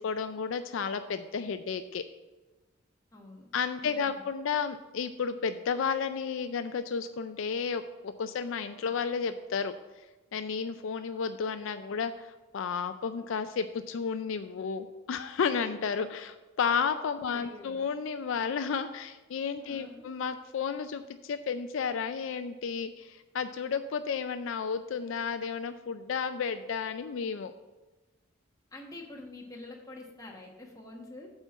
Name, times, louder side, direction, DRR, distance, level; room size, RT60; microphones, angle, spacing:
voice 1, 0.0-2.0 3.5-9.7 10.3-27.5, left 6 dB, 65° left, 10 dB, 0.4 m, -32 dB
voice 2, 3.1-3.5 3.8-4.2 17.3-17.8 19.6-20.1 28.7-31.3, left 2 dB, 15° left, 0 dB, 1.2 m, -47 dB
8.0 x 4.4 x 6.9 m, 1.2 s
head